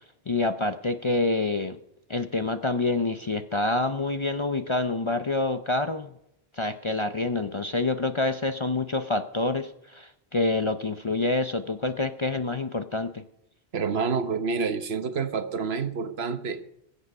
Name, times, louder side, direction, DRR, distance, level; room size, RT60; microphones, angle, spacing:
voice 1, 0.3-1.8 2.1-6.1 6.5-13.2, left 2 dB, 35° left, 9 dB, 0.6 m, -27 dB
voice 2, 13.7-16.6, right 5 dB, 70° right, 10 dB, 1.3 m, -28 dB
22.0 x 8.2 x 5.4 m, 0.80 s
omnidirectional pair, 1.1 m